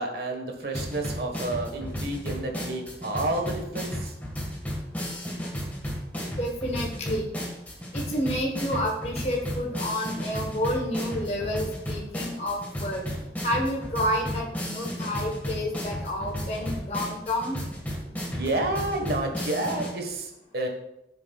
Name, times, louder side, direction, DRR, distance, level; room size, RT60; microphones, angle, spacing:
voice 1, 0.0-4.1 18.0-20.7, right 2 dB, 55° right, 2 dB, 1.4 m, -30 dB
sound 1, 0.7-19.9, equal, 10° left, 1.7 m, -34 dB
voice 2, 6.3-7.3 7.9-13.0 13.4-17.6, left 1 dB, 35° left, -1 dB, 1.3 m, -29 dB
14.5 x 7.1 x 2.4 m, 0.86 s
head